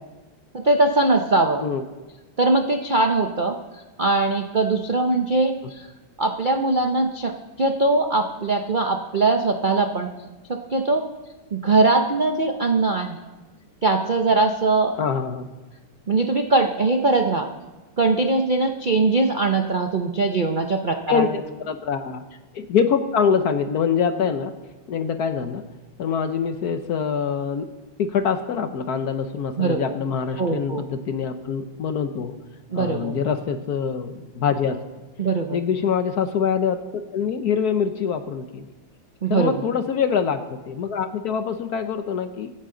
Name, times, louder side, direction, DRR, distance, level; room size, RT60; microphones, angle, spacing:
voice 1, 0.5-1.7 2.4-5.9 6.2-10.1 10.5-11.0 11.5-13.2 13.8-14.9 16.1-17.5 18.0-21.3 29.6-29.8 30.4-30.8 32.7-33.2 35.2-35.6 39.2-39.5, right 3 dB, 80° right, 4 dB, 0.4 m, -21 dB
voice 2, 15.0-15.5 21.1-22.2 22.5-24.5 24.9-25.6 26.0-27.7 28.0-32.3 32.7-34.8 35.5-38.7 39.3-42.5, left 6 dB, 60° left, 9 dB, 1.1 m, -24 dB
25.0 x 9.9 x 3.9 m, 1.2 s
omnidirectional pair, 2.2 m